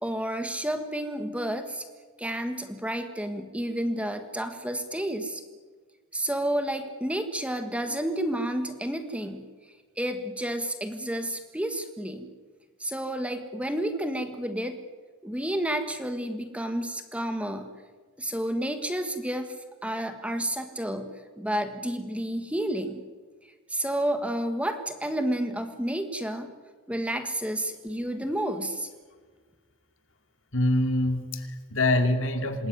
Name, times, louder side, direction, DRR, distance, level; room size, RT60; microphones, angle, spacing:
voice 1, 0.0-1.8 2.2-5.4 6.1-9.5 10.0-12.3 12.8-14.8 15.2-17.7 18.2-19.5 19.8-23.0 23.7-26.5 26.9-28.9, right 1 dB, 5° right, 7 dB, 1.5 m, -30 dB
voice 2, 30.5-32.7, left 1 dB, 60° left, 7 dB, 2.7 m, -25 dB
27.0 x 20.5 x 9.5 m, 1.5 s
head